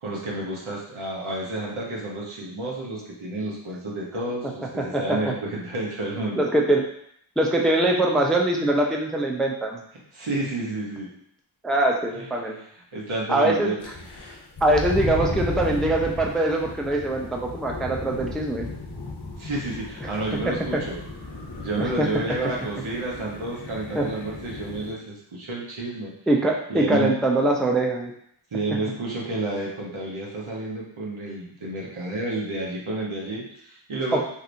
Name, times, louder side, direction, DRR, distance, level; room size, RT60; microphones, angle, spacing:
voice 1, 0.0-6.4 10.1-11.1 12.2-12.3 12.9-13.8 19.4-21.0 21.6-26.1 26.7-27.1 28.5-34.2, right 2 dB, 85° right, -4 dB, 1.0 m, -30 dB
voice 2, 4.8-5.2 6.4-6.8 7.4-9.8 11.6-12.6 13.3-13.7 14.6-18.7 20.0-20.1 20.5-20.8 21.8-22.1 23.9-24.1 26.3-28.1 34.1-34.2, right 1 dB, ahead, 0 dB, 0.4 m, -23 dB
sound 1, 13.8-24.9, left 2 dB, 55° left, 0.8 m, -35 dB
3.2 x 2.8 x 2.6 m, 0.69 s
wide cardioid pair, 50°, 48 cm